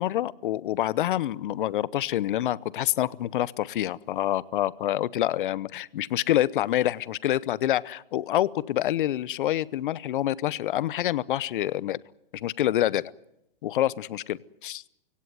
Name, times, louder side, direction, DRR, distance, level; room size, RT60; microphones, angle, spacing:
voice 1, 0.0-12.0 12.3-13.1 13.6-14.8, left 13 dB, 60° left, 21 dB, 0.8 m, -27 dB
24.5 x 17.0 x 9.6 m, 0.86 s
hypercardioid pair, 140°, 29 cm